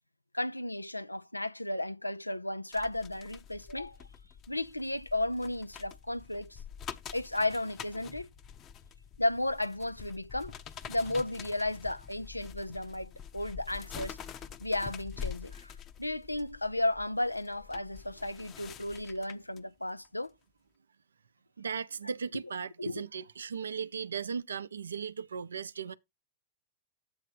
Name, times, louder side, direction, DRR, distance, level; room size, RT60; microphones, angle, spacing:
voice 1, 0.3-4.0 4.5-6.6 7.1-8.3 9.2-10.5 10.9-14.2 14.6-15.7 16.0-20.3 22.8-23.0, left 1 dB, 85° left, 0.4 m, -34 dB
sound 1, 2.7-19.6 20.0-20.3, left 8 dB, 30° left, 0.8 m, -46 dB
voice 2, 21.6-25.9, right 6 dB, 70° right, 0.5 m, -37 dB
8.7 x 3.2 x 6.2 m
figure-of-eight pair, 90°, 0 cm